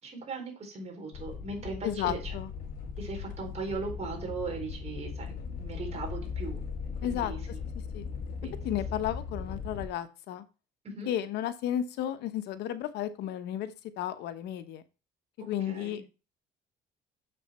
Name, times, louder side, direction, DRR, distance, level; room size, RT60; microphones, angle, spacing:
voice 1, 0.0-2.3 3.0-6.6 7.0-7.4 8.4-8.5 10.8-11.1 15.7-16.0, right 3 dB, 40° right, 1 dB, 4.2 m, -38 dB
sound 1, 1.1-9.9, left 5 dB, 55° left, 2.0 m, -38 dB
voice 2, 1.8-2.5 7.0-7.3 7.9-8.1 8.6-10.4 11.1-14.8 15.4-16.0, left 11 dB, 85° left, 12 dB, 1.0 m, -33 dB
7.0 x 6.9 x 4.2 m, 0.31 s
cardioid pair, 110°, 17 cm